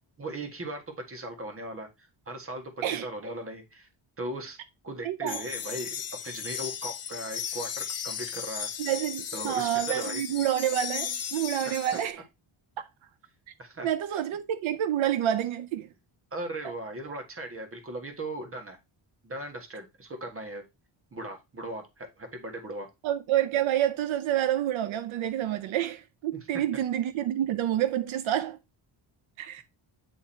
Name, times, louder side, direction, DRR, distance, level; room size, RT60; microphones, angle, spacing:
voice 1, 0.2-0.8 1.1-3.9 4.2-4.6 4.8-5.9 6.2-8.7 9.3-10.2 11.6-12.0 13.6-14.2 16.3-18.8 19.2-20.6 21.1-22.9 26.3-26.4, right 1 dB, 25° right, 1.7 m, -38 dB
voice 2, 5.0-5.4 8.8-12.2 13.8-15.9 23.0-28.6 29.4-29.6, right 11 dB, 75° right, 0.7 m, -28 dB
sound 1, 5.3-12.1, left 8 dB, 30° left, 0.6 m, -36 dB
9.0 x 3.6 x 4.3 m
wide cardioid pair, 160°, 48 cm